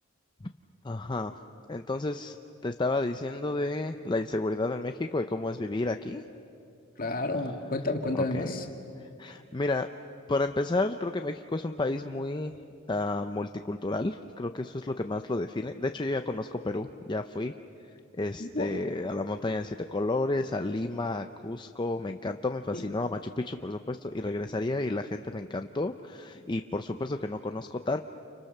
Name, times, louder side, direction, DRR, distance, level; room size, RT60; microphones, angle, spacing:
voice 1, 0.8-1.3 1.7-2.4 2.6-6.2 8.1-8.5 9.0-9.9 10.3-12.5 12.9-17.5 18.1-28.0, left 2 dB, 20° left, 7 dB, 0.6 m, -31 dB
voice 2, 7.0-8.7 18.4-18.8 22.7-22.8, left 2 dB, 40° left, 3 dB, 2.2 m, -31 dB
30.0 x 29.5 x 6.7 m, 2.7 s
head